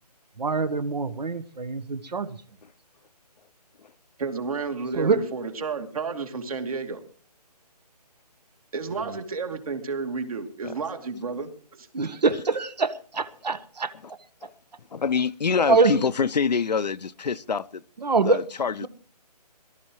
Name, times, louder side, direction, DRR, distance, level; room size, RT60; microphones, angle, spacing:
voice 1, 0.4-2.3 5.0-5.2 11.9-13.9 15.7-16.0 18.0-18.4 18.8-18.9, right 4 dB, 80° right, 1.3 m, -24 dB
voice 2, 4.2-7.0 8.7-11.9, right 4 dB, 60° right, 2.8 m, -31 dB
voice 3, 14.9-17.8 18.2-18.9, left 6 dB, 85° left, 0.7 m, -25 dB
22.5 x 13.0 x 3.1 m
hypercardioid pair, 155°, 21 cm